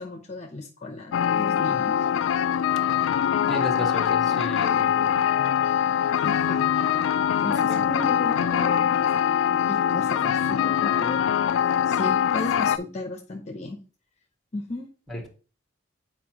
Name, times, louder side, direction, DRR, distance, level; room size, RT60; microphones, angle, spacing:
voice 1, 0.0-2.1 6.2-6.9 7.4-9.1 9.7-11.2 11.8-13.8 14.5-14.9, left 2 dB, 35° left, 3 dB, 0.7 m, -35 dB
sound 1, 1.1-12.8, left 9 dB, 80° left, 0.3 m, -23 dB
voice 2, 3.5-5.2 7.6-7.9 15.1-15.3, equal, ahead, 2 dB, 1.4 m, -34 dB
9.1 x 4.6 x 2.9 m, 0.37 s
head